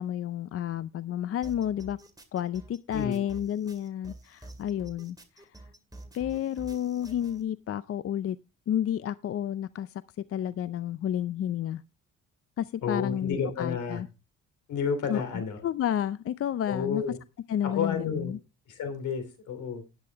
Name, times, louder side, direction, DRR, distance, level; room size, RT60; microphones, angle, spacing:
voice 1, 0.0-2.0 2.3-5.5 6.1-8.4 8.7-10.0 10.3-11.8 12.6-14.1 15.1-17.0 17.5-18.4, left 10 dB, 50° left, 16 dB, 0.5 m, -31 dB
sound 1, 1.4-7.4, right 1 dB, 10° right, 2.2 m, -48 dB
voice 2, 12.8-14.0 14.7-15.6 16.7-17.2 17.6-18.3 18.7-19.8, left 6 dB, 80° left, 9 dB, 2.9 m, -31 dB
10.5 x 9.2 x 3.4 m, 0.29 s
cardioid pair, 90°, 30 cm